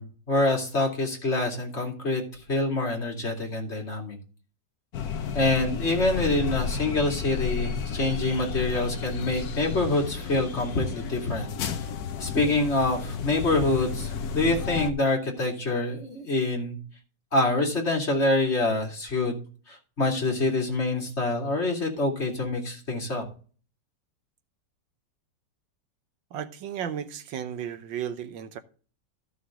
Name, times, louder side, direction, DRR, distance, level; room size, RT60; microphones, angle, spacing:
voice 1, 0.0-4.2 5.3-11.5 12.2-16.8 17.3-23.2, left 2 dB, 35° left, 2.8 m, -26 dB
sound 1, 4.9-14.9, left 6 dB, 60° left, 1.3 m, -33 dB
voice 2, 26.3-28.6, right 9 dB, 90° right, 1.6 m, -34 dB
14.0 x 6.2 x 3.7 m
omnidirectional pair, 2.0 m